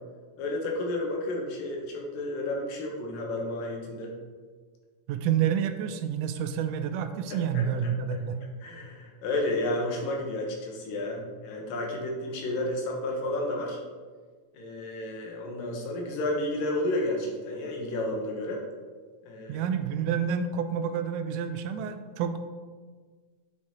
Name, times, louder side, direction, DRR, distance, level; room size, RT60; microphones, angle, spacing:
voice 1, 0.4-4.1 7.3-7.9 8.6-13.8 14.5-18.6 19.3-19.7, left 1 dB, 80° left, 0 dB, 2.9 m, -31 dB
voice 2, 5.1-8.4 19.5-22.4, right 8 dB, 80° right, 8 dB, 2.0 m, -29 dB
9.5 x 4.9 x 4.3 m, 1.5 s
omnidirectional pair, 3.9 m